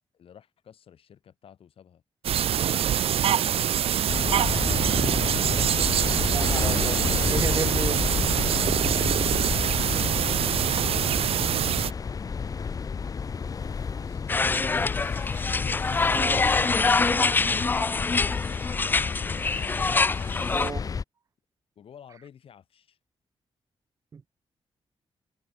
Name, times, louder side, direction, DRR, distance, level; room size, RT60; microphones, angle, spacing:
voice 1, 0.1-2.0 2.7-4.1 4.4-6.1 9.9-14.2 17.3-18.7 19.5-20.0 21.8-23.0, left 8 dB, 65° left, 7.1 m, -51 dB
sound 1, 2.2-11.9, right 10 dB, 70° right, 0.9 m, -24 dB
sound 2, 4.1-21.0, left 5 dB, 35° left, 1.3 m, -31 dB
voice 2, 6.3-7.0 7.3-8.0 9.3-9.5 16.1-16.5 20.5-20.9 24.1-24.2, right 5 dB, 35° right, 0.9 m, -33 dB
sound 3, 14.3-20.7, left 4 dB, 20° left, 0.4 m, -25 dB
wide cardioid pair, 155°, 10 cm